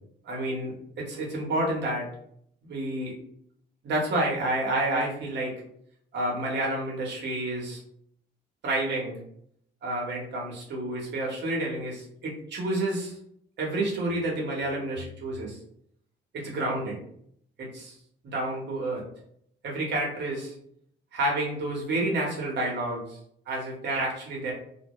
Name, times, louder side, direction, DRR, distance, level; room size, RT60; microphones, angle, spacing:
voice 1, 0.2-2.1 2.6-3.1 3.8-5.6 6.1-7.8 8.6-9.2 9.8-13.1 13.6-15.6 16.3-17.0 17.6-18.0 18.2-19.0 19.6-20.5 21.1-23.0 23.5-24.5, right 1 dB, 60° right, -2 dB, 1.0 m, -29 dB
2.2 x 2.0 x 2.9 m, 0.68 s
cardioid pair, 90°, 20 cm